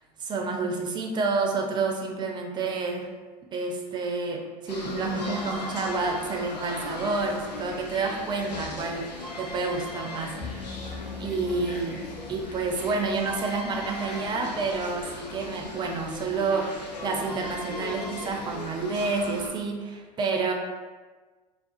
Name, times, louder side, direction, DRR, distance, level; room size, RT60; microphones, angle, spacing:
voice 1, 0.2-3.1 3.5-9.1 9.4-10.8 11.2-12.0 12.3-20.5, right 4 dB, 20° right, 2 dB, 0.4 m, -29 dB
sound 1, 4.7-19.5, left 2 dB, 85° left, 0.5 m, -38 dB
sound 2, 10.4-14.0, left 4 dB, 50° left, 0.8 m, -41 dB
2.4 x 2.3 x 2.4 m, 1.3 s
hypercardioid pair, 85°, 21 cm